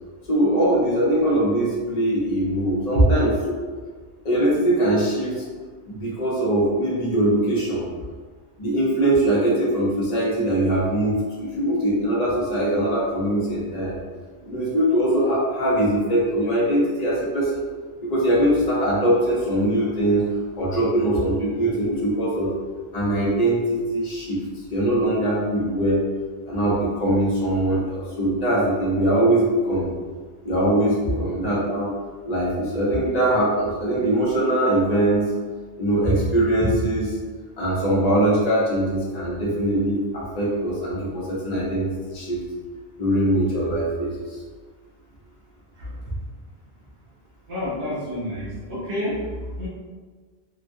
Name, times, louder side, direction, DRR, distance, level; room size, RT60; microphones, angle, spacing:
voice 1, 0.3-3.4 4.2-5.4 5.9-7.8 8.6-14.0 14.4-17.6 18.0-20.3 20.6-22.5 22.9-24.4 24.7-26.0 26.5-29.9 30.4-31.9 32.2-35.3 35.8-37.2 37.6-42.4 43.0-44.2, right 1 dB, 40° left, -7 dB, 0.8 m, -22 dB
voice 2, 47.5-49.2 49.6-49.7, equal, 70° right, -7 dB, 1.0 m, -26 dB
3.0 x 2.3 x 2.5 m, 1.5 s
omnidirectional pair, 1.1 m